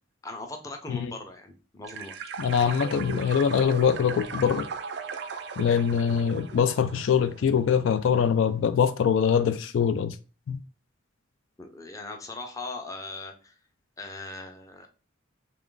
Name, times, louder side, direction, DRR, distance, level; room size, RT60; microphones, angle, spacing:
voice 1, 0.2-2.2 11.6-13.6 14.0-14.9, left 3 dB, 15° left, 0.5 m, -39 dB
sound 1, 1.8-7.6, right 5 dB, 55° right, 0.3 m, -37 dB
voice 2, 2.4-4.7 5.6-10.2 10.5-10.6, left 7 dB, 75° left, 0.3 m, -23 dB
3.1 x 2.5 x 3.7 m
head